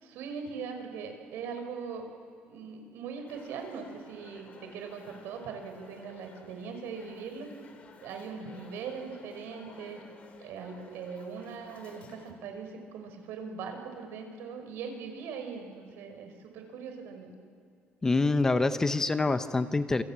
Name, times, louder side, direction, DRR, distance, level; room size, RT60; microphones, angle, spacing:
voice 1, 0.0-2.1 2.5-7.5 8.0-10.0 10.4-17.3, right 5 dB, 85° right, 5 dB, 5.2 m, -40 dB
sound 1, 3.3-12.3, left 4 dB, 35° left, 2.9 m, -54 dB
voice 2, 18.0-20.0, left 3 dB, 15° left, 10 dB, 0.8 m, -26 dB
27.5 x 25.0 x 8.8 m, 2.5 s
cardioid pair, 170°, 4 cm